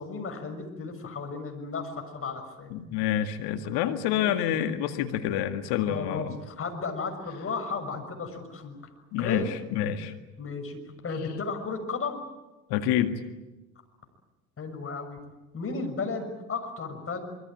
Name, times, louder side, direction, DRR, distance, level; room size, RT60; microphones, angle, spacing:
voice 1, 0.0-2.7 4.1-4.5 5.9-8.7 9.2-9.5 10.4-12.2 14.6-15.2 15.5-17.2, left 4 dB, 30° left, 6 dB, 6.6 m, -34 dB
voice 2, 2.7-6.4 9.1-9.5 9.7-10.1 12.7-13.2, left 10 dB, 55° left, 7 dB, 2.1 m, -27 dB
25.0 x 24.0 x 8.9 m, 1.1 s
hypercardioid pair, 75°, 46 cm